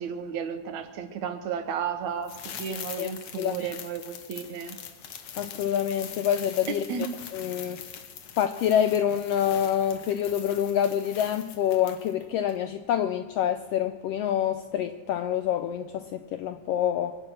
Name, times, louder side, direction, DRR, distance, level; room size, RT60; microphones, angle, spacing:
voice 1, 0.0-4.8 6.9-7.1, right 7 dB, 75° right, 8 dB, 2.5 m, -33 dB
sound 1, 2.2-12.2 12.5-12.6, left 8 dB, 60° left, 1.9 m, -43 dB
voice 2, 3.0-3.7 5.4-6.8 7.3-7.8 8.4-17.2, left 9 dB, 85° left, 10 dB, 1.3 m, -27 dB
23.5 x 9.5 x 6.5 m, 1.5 s
omnidirectional pair, 3.5 m